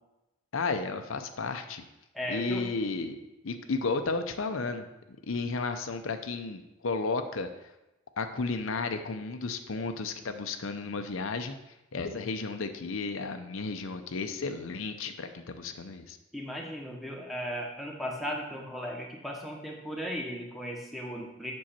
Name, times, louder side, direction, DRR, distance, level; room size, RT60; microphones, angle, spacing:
voice 1, 0.5-1.8 2.3-3.2 3.4-4.9 5.3-7.5 8.2-11.6 11.9-16.2, left 4 dB, 85° left, 7 dB, 0.6 m, -33 dB
voice 2, 2.1-2.7 16.3-21.5, equal, ahead, -1 dB, 1.1 m, -36 dB
7.6 x 6.3 x 4.3 m, 0.98 s
head